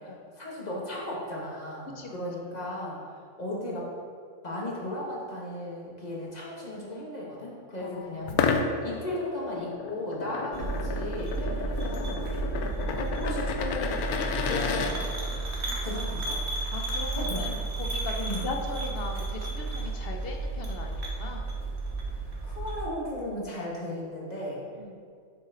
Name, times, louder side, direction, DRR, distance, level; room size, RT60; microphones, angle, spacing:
voice 1, 0.0-3.9 4.4-8.5 8.8-12.5 12.9-14.0 14.4-15.4 15.8-16.4 17.1-17.5 18.2-18.5 22.4-24.6, left 1 dB, 30° left, -4 dB, 1.6 m, -36 dB
voice 2, 7.8-8.7 11.4-11.6 12.5-12.7 15.6-16.0 16.6-21.5 24.8-25.0, left 3 dB, 50° left, 3 dB, 0.8 m, -40 dB
sound 1, 8.3-14.9, left 5 dB, 85° left, 1.1 m, -31 dB
sound 2, 10.5-22.9, right 3 dB, 50° right, 1.3 m, -32 dB
7.2 x 6.5 x 3.8 m, 2.1 s
omnidirectional pair, 1.5 m